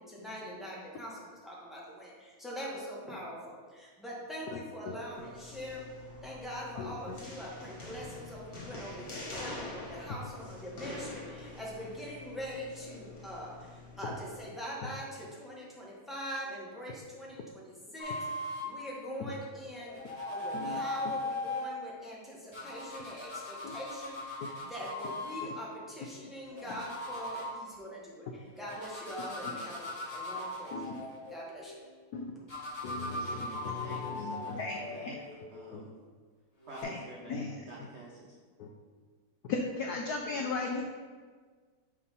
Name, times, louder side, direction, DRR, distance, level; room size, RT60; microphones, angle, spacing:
voice 1, 0.0-5.9 6.2-20.0 20.3-31.7, equal, ahead, -5 dB, 0.8 m, -43 dB
voice 2, 4.5-5.0 6.8-7.1 14.8-14.9 20.3-20.8 23.6-23.8 26.2-26.3 30.7-30.9 32.1-32.3 32.8-35.2 35.7-35.8 36.8-37.0 37.3-37.6 38.6-38.7 39.5-40.8, left 4 dB, 80° left, 2 dB, 0.8 m, -37 dB
sound 1, 5.1-14.5, left 2 dB, 40° left, 1.5 m, -46 dB
sound 2, 18.0-18.7 19.7-21.7 22.5-25.4 26.4-27.5 28.6-31.7 32.5-35.8 36.6-36.8, left 2 dB, 20° left, 1.8 m, -39 dB
voice 3, 33.0-35.1 35.5-35.9 36.7-38.4, right 2 dB, 80° right, -3 dB, 0.6 m, -49 dB
6.2 x 3.7 x 5.4 m, 1.5 s
omnidirectional pair, 2.3 m